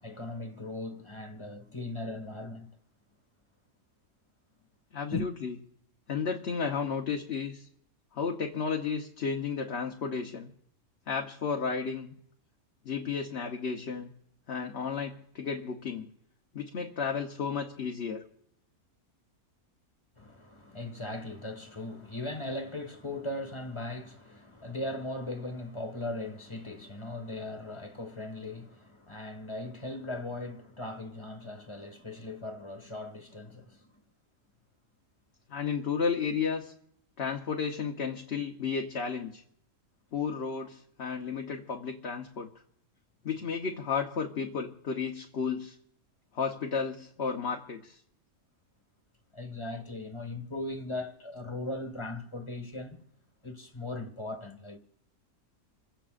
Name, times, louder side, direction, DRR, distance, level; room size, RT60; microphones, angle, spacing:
voice 1, 0.0-2.7 5.1-5.3 20.2-33.9 49.3-53.0 53.4-54.8, left 2 dB, 20° left, 1.6 m, -38 dB
voice 2, 4.9-5.5 6.1-7.7 8.1-10.5 11.1-12.1 12.8-14.1 14.5-16.1 16.5-18.2 35.5-36.7 37.2-39.4 40.1-42.5 43.2-45.8 46.3-48.0, left 6 dB, 50° left, 1.2 m, -33 dB
28.0 x 16.0 x 2.5 m
omnidirectional pair, 1.5 m